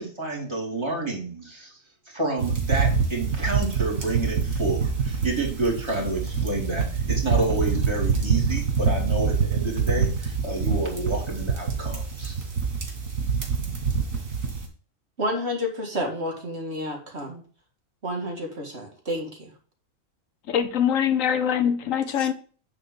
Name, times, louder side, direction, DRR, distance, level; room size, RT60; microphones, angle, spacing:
voice 1, 0.0-1.8 2.1-12.3, right 2 dB, 20° right, 2.7 m, -29 dB
sound 1, 2.4-14.6, right 5 dB, 90° right, 2.3 m, -26 dB
voice 2, 15.2-17.4 18.0-19.5, equal, 55° right, 2.0 m, -30 dB
voice 3, 20.5-22.3, left 8 dB, 80° left, 1.2 m, -23 dB
8.9 x 3.8 x 6.2 m
omnidirectional pair, 1.4 m